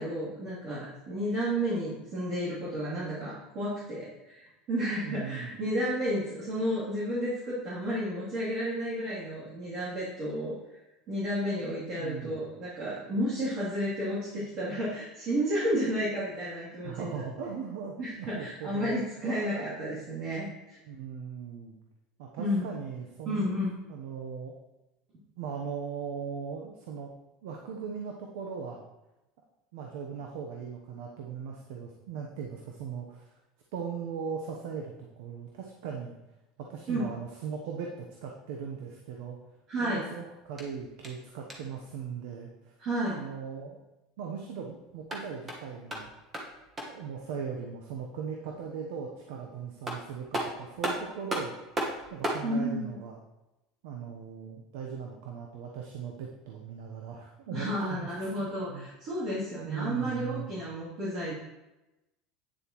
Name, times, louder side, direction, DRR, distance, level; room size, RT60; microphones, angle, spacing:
voice 1, 0.0-10.6 11.1-17.2 18.0-20.8 22.4-22.6 23.2-23.7 36.9-37.1 39.7-40.0 42.8-43.2 52.4-53.0 57.5-61.4, equal, 45° right, -10 dB, 3.0 m, -32 dB
voice 2, 5.0-5.5 12.0-12.4 16.8-19.0 20.9-21.8 22.2-23.5 23.9-24.5 25.4-27.1 27.4-28.9 29.7-33.3 33.7-36.1 36.6-39.4 39.8-42.7 43.1-43.8 44.2-46.1 46.9-51.5 52.1-53.2 53.8-58.9 59.6-60.5, right 6 dB, 80° right, 1 dB, 0.9 m, -39 dB
sound 1, 40.4-41.8 44.9-47.1 49.4-49.5 49.9-52.5, right 1 dB, 20° right, 1.4 m, -36 dB
9.3 x 6.9 x 3.1 m, 0.98 s
supercardioid pair, 135°, 0 cm